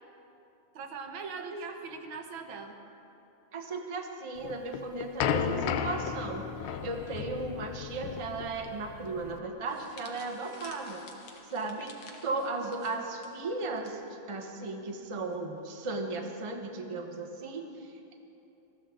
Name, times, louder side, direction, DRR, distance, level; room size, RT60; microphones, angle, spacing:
voice 1, 0.7-2.8, right 5 dB, 80° right, 4 dB, 1.7 m, -41 dB
voice 2, 3.5-11.1 11.5-14.0 14.3-18.1, right 3 dB, 25° right, 2 dB, 0.7 m, -36 dB
sound 1, 4.4-9.4, left 8 dB, 85° left, 1.5 m, -34 dB
sound 2, 9.7-13.9 14.2-14.4 15.3-15.6, left 4 dB, 65° left, 1.9 m, -52 dB
20.0 x 14.0 x 3.8 m, 2.8 s
omnidirectional pair, 2.2 m